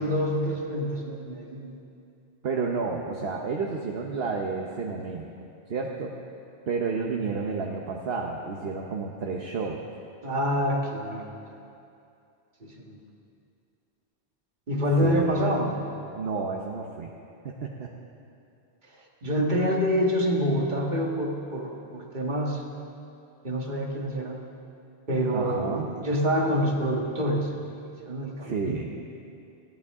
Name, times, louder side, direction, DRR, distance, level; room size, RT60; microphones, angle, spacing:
voice 1, 0.0-1.7 10.2-11.5 12.6-13.0 14.7-15.8 19.2-22.6 23.4-24.4 25.1-27.5 27.9-28.8, equal, 45° right, 0 dB, 1.8 m, -27 dB
voice 2, 2.4-5.3 5.7-6.1 6.7-9.8 15.0-15.4 16.1-17.1 17.4-17.9 25.3-25.9 28.4-28.9, right 4 dB, 65° right, 0 dB, 1.2 m, -31 dB
20.0 x 15.0 x 3.7 m, 2.6 s
omnidirectional pair, 1.1 m